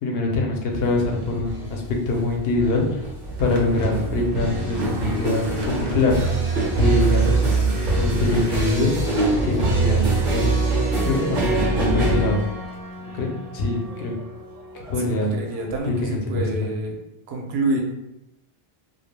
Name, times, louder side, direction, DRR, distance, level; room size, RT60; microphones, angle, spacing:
voice 1, 0.0-3.0 3.4-6.2 6.8-8.9 9.4-10.6 11.0-12.4 13.1-14.1 14.9-15.4 15.8-16.7, left 2 dB, 75° left, 1 dB, 0.8 m, -24 dB
sound 1, 0.7-15.8, right 2 dB, 55° right, 0.7 m, -24 dB
sound 2, 3.4-8.7, right 1 dB, 40° right, 0.4 m, -37 dB
voice 2, 15.0-17.0 17.3-17.8, right 2 dB, 85° right, 2 dB, 0.8 m, -27 dB
2.2 x 2.1 x 3.1 m, 0.89 s
omnidirectional pair, 1.0 m